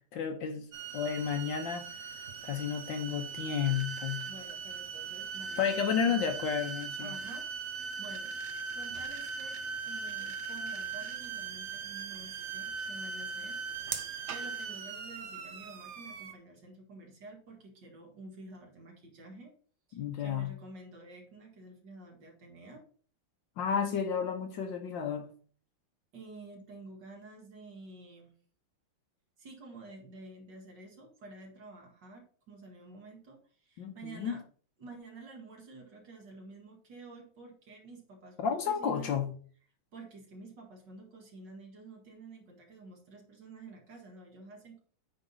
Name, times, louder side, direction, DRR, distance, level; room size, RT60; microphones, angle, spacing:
voice 1, 0.1-0.7 0.9-1.8 2.4-4.2 5.6-7.1 19.9-20.5 23.6-25.3 33.8-34.4 38.4-39.3, left 7 dB, 65° left, 6 dB, 1.6 m, -32 dB
sound 1, 0.7-16.3, right 5 dB, 80° right, 0.6 m, -39 dB
voice 2, 4.2-6.6 7.0-8.3 8.7-9.6 9.8-13.6 13.9-19.5 19.9-22.8 23.9-24.0 26.1-28.3 29.4-34.4 34.8-39.2 39.9-44.8, right 2 dB, 55° right, 1 dB, 2.6 m, -50 dB
9.0 x 3.9 x 5.6 m, 0.44 s
omnidirectional pair, 2.4 m